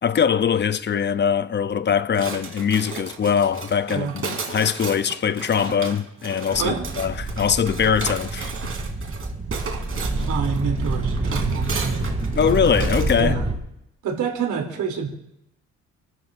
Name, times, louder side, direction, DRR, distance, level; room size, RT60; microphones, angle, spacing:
voice 1, 0.0-8.5 12.4-13.3, left 7 dB, 35° left, 0.7 m, -22 dB
sound 1, 2.1-13.3, right 5 dB, 45° right, 3.2 m, -34 dB
sound 2, 6.5-13.5, right 2 dB, 20° right, 2.8 m, -27 dB
voice 2, 6.6-6.9 10.2-12.1 13.2-13.5 14.0-15.1, right 6 dB, 80° right, 3.2 m, -27 dB
29.5 x 13.0 x 2.6 m
cardioid pair, 90°, 30 cm